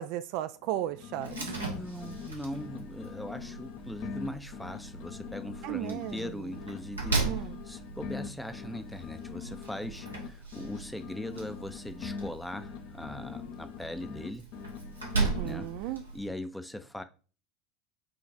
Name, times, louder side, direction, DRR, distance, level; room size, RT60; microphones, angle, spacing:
voice 1, 0.0-1.4 5.6-6.5 7.2-7.6 15.1-16.0, right 13 dB, 55° right, 0.3 m, -35 dB
sound 1, 0.6-2.3 2.5-6.3 6.5-10.3 10.5-14.3 14.5-15.9, left 6 dB, 55° left, 0.7 m, -43 dB
Slam, 1.2-16.3, right 3 dB, 80° right, 1.1 m, -38 dB
voice 2, 1.4-14.5 15.4-15.7 16.1-17.0, left 1 dB, 5° left, 0.5 m, -40 dB
4.9 x 2.4 x 4.0 m
figure-of-eight pair, 75°, 0 cm